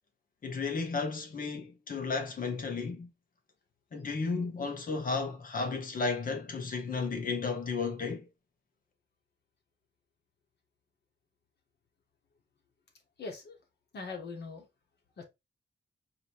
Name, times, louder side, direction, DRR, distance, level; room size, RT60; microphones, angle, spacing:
voice 1, 0.4-3.1 3.9-8.3, left 4 dB, 50° left, 1.2 m, -33 dB
voice 2, 13.2-13.6 13.9-14.7 15.2-15.3, left 4 dB, 65° left, 1.5 m, -41 dB
4.9 x 3.0 x 3.4 m
wide cardioid pair, 165°, 18 cm